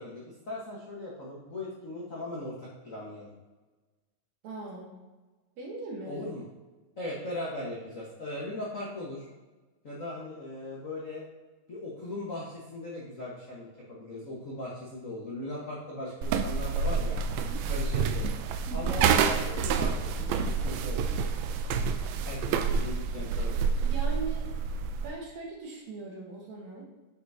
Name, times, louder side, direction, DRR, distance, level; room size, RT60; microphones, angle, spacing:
voice 1, 0.0-3.3 6.0-6.4 7.0-9.3 9.8-11.3 11.7-17.2 17.6-18.3 18.7-21.1 22.2-23.6, left 1 dB, 70° left, -6 dB, 0.7 m, -38 dB
voice 2, 4.4-5.0 5.6-6.3 18.7-19.0 23.8-24.5 25.0-26.8, right 3 dB, 65° right, -1 dB, 2.4 m, -40 dB
sound 1, 16.2-25.1, right 5 dB, 85° right, 1.5 m, -28 dB
9.1 x 6.8 x 2.8 m, 1.2 s
omnidirectional pair, 3.7 m